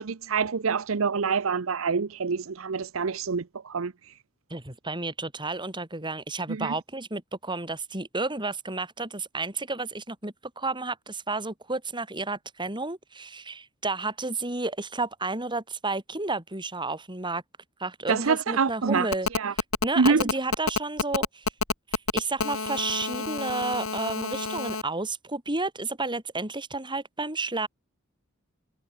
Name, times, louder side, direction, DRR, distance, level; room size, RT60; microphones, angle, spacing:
voice 1, 0.0-3.9 6.5-6.7 18.1-19.1 19.3-19.5 20.0-20.2, right 5 dB, 75° right, 0.7 m, -26 dB
voice 2, 4.5-17.4 17.8-21.5 22.1-27.7, right 3 dB, 25° right, 6.5 m, -31 dB
Telephone, 19.1-24.8, left 4 dB, 85° left, 2.7 m, -28 dB
head